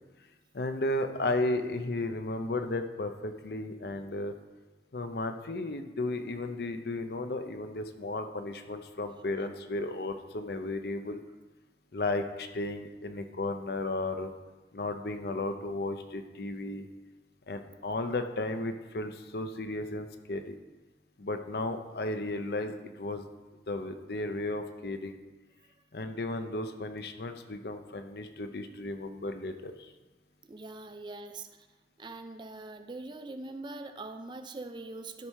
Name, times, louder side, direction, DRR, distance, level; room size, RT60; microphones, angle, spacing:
voice 1, 0.5-4.3 4.9-11.2 11.9-14.3 14.7-16.9 17.5-20.6 21.2-23.2 23.7-25.2 25.9-29.9, left 2 dB, 60° left, 8 dB, 0.7 m, -34 dB
voice 2, 30.5-31.7 32.0-35.3, right 2 dB, 25° right, 8 dB, 0.5 m, -42 dB
12.0 x 4.7 x 5.5 m, 1.2 s
head